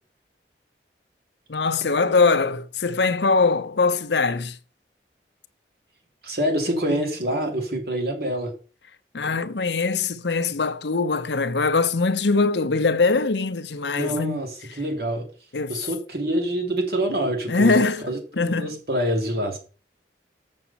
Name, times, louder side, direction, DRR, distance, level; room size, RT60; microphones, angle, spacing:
voice 1, 1.5-4.6 9.1-14.4 15.5-15.7 17.5-18.0 18.4-18.8, left 4 dB, 80° left, 0.8 m, -22 dB
voice 2, 6.2-8.5 13.9-15.3 15.7-19.6, right 1 dB, 60° right, 3.1 m, -26 dB
7.3 x 6.3 x 6.9 m
head